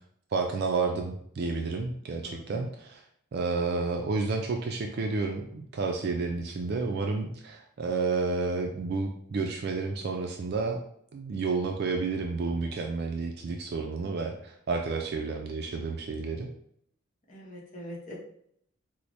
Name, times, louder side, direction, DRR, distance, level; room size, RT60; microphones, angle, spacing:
voice 1, 0.3-3.0 3.3-10.8 11.1-16.5, right 4 dB, 50° right, 2 dB, 0.3 m, -30 dB
voice 2, 2.2-2.7 17.3-18.2, left 1 dB, 40° left, -3 dB, 0.8 m, -43 dB
4.5 x 2.1 x 2.6 m, 0.67 s
head